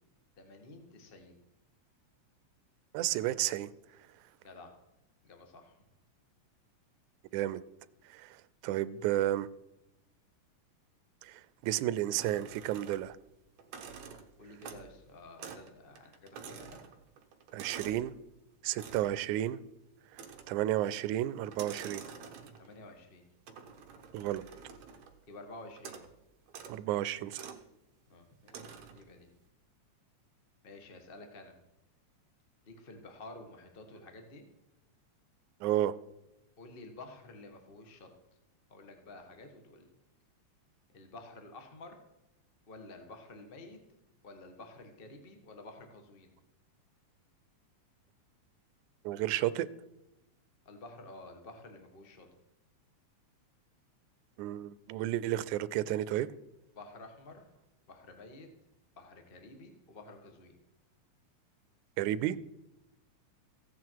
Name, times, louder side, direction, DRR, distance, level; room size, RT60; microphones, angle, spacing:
voice 1, 0.4-1.3 4.4-4.7 5.2-5.8 14.4-16.8 22.6-23.2 25.3-26.0 28.1-29.3 30.6-31.5 32.6-34.4 36.6-38.1 38.7-39.9 40.9-42.0 42.7-43.8 44.2-46.3 50.6-52.3 56.7-57.5 57.9-58.5 59.0-60.5, left 2 dB, 30° left, 5 dB, 1.0 m, -51 dB
voice 2, 2.9-3.7 7.3-7.6 8.0-9.5 11.2-13.2 17.5-18.1 18.6-19.6 20.1-22.0 24.1-24.4 26.7-27.6 35.6-36.0 49.0-49.7 54.4-56.3 62.0-62.4, right 13 dB, 90° right, 17 dB, 2.0 m, -32 dB
sound 1, 12.2-13.2 13.6-15.0 15.4-15.7 16.0-18.1 18.7-19.2 20.1-20.7 21.5-22.8 23.5-25.2 25.8-26.1 26.5-26.8 27.3-27.6 28.5-29.1, right 6 dB, 70° right, 2.4 m, -48 dB
15.5 x 9.4 x 4.7 m, 0.91 s
omnidirectional pair, 3.4 m